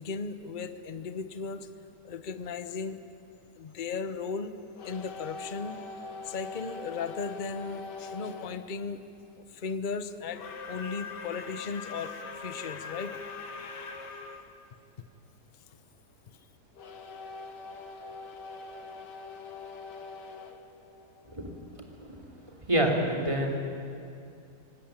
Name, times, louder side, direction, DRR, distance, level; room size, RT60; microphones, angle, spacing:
voice 1, 0.0-1.7 2.0-3.0 3.6-4.5 4.8-5.8 6.2-9.0 9.5-10.4 10.7-13.2 16.3-16.4, left 5 dB, 35° left, 10 dB, 0.9 m, -36 dB
Factory whistle train whistle, 4.7-8.6 10.3-14.4 16.7-21.6, left 4 dB, 75° left, 2.1 m, -42 dB
voice 2, 22.7-23.6, right 1 dB, 15° right, 0 dB, 3.0 m, -27 dB
26.0 x 19.0 x 8.9 m, 2.4 s
omnidirectional pair, 1.9 m